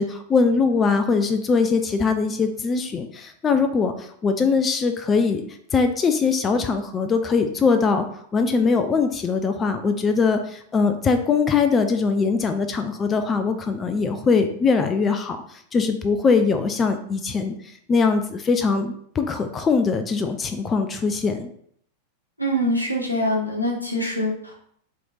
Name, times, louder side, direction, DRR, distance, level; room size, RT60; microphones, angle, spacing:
voice 1, 0.0-5.4 5.7-8.1 8.3-17.5 17.9-21.5, left 4 dB, 20° left, 8 dB, 0.4 m, -21 dB
voice 2, 22.4-24.5, equal, 90° left, -1 dB, 0.9 m, -24 dB
3.2 x 2.9 x 3.9 m, 0.66 s
figure-of-eight pair, 90°, 0 cm